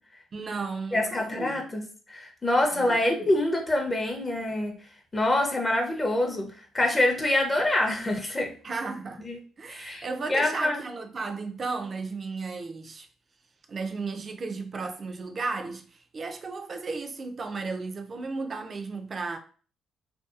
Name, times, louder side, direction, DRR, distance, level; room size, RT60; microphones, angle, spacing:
voice 1, 0.3-1.6 2.7-3.3 8.6-9.2 9.6-13.1 13.7-19.4, right 4 dB, 40° right, 0.4 m, -34 dB
voice 2, 0.9-4.8 5.1-8.5 9.2-9.4 9.7-10.8, left 1 dB, 20° left, 0.6 m, -26 dB
2.7 x 2.3 x 2.4 m
cardioid pair, 90°, 0 cm